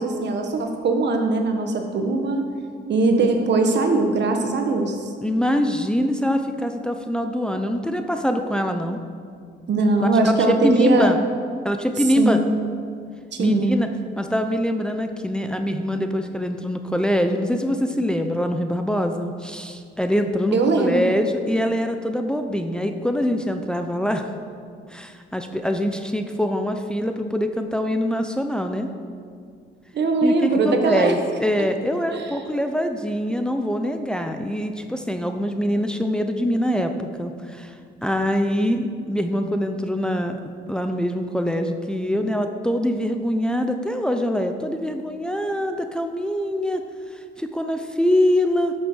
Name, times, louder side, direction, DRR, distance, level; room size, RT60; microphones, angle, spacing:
voice 1, 0.0-2.4 2.9-5.1 9.7-11.1 12.2-12.5 13.3-13.8 20.5-21.0 29.9-31.1 32.1-32.3, right 3 dB, 60° right, 4 dB, 1.5 m, -20 dB
voice 2, 5.2-9.0 10.0-11.2 11.6-12.4 13.4-13.9 14.2-24.3 24.9-28.9 30.2-37.7 38.0-40.4 40.7-46.8 47.4-48.7, equal, 5° left, 6 dB, 0.8 m, -24 dB
12.0 x 6.6 x 6.3 m, 2.2 s
cardioid pair, 90°, 20 cm